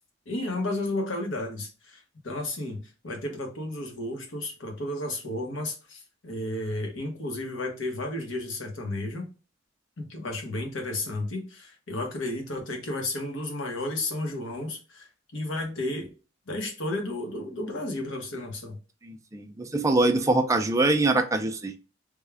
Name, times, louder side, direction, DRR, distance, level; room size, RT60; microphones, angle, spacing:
voice 1, 0.3-9.3 10.0-15.1 15.3-16.1 16.5-18.8, left 1 dB, 70° left, 2 dB, 1.0 m, -32 dB
voice 2, 19.1-21.8, right 2 dB, 15° right, 5 dB, 0.4 m, -24 dB
3.5 x 2.3 x 3.3 m, 0.33 s
head